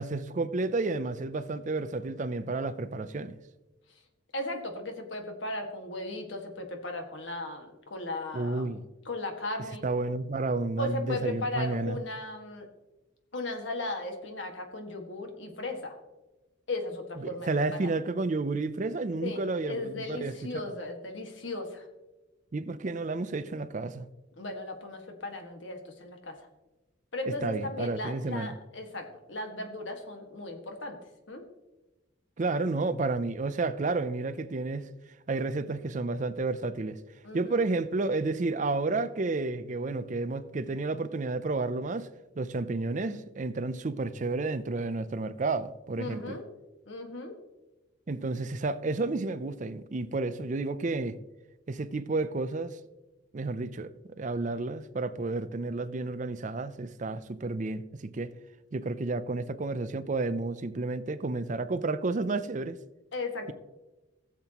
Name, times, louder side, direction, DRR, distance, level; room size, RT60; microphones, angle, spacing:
voice 1, 0.0-3.4 8.3-8.8 9.8-12.0 17.2-20.7 22.5-24.1 27.4-28.6 32.4-34.9 35.3-37.0 37.3-42.1 42.4-46.4 48.1-51.2 51.7-52.8 53.3-53.9 54.2-58.3 58.7-62.8, right 3 dB, 40° right, 0.5 m, -31 dB
voice 2, 4.3-8.7 9.1-9.8 10.8-12.7 13.3-16.0 16.7-17.9 19.2-21.9 24.3-26.4 27.1-31.0 31.3-31.4 37.2-37.6 46.0-46.5 46.9-47.3 63.1-63.5, left 2 dB, 75° left, 1.8 m, -36 dB
17.0 x 7.4 x 3.0 m
head